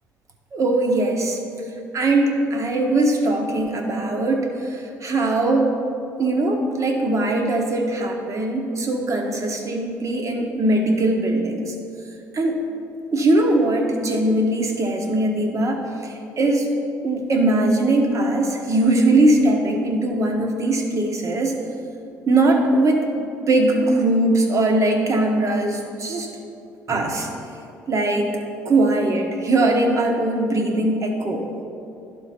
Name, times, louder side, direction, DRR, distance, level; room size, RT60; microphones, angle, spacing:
voice 1, 0.5-1.4 1.9-5.7 6.2-11.7 12.3-12.5 13.1-16.7 17.0-21.6 22.3-26.3 26.9-27.3 27.9-28.3 28.6-31.5, right 2 dB, 45° right, 2 dB, 1.2 m, -20 dB
11.5 x 3.9 x 4.3 m, 2.6 s
supercardioid pair, 70°, 7 cm